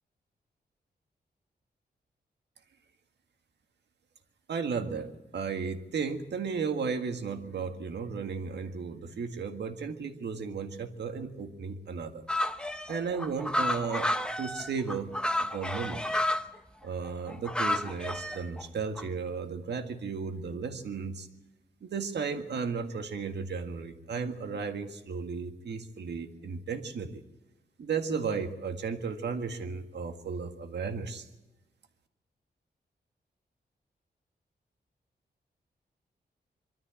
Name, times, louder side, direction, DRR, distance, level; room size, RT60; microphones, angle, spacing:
voice 1, 4.5-12.2 12.9-14.1 14.4-15.1 15.4-16.0 16.8-21.3 21.8-27.2 27.8-31.3, right 5 dB, 75° right, 6 dB, 1.8 m, -34 dB
sound 1, 12.3-16.5 17.1-18.6 19.0-19.1, left 1 dB, 5° left, 0.8 m, -31 dB
23.5 x 13.0 x 8.8 m, 1.1 s
wide cardioid pair, 150°, 18 cm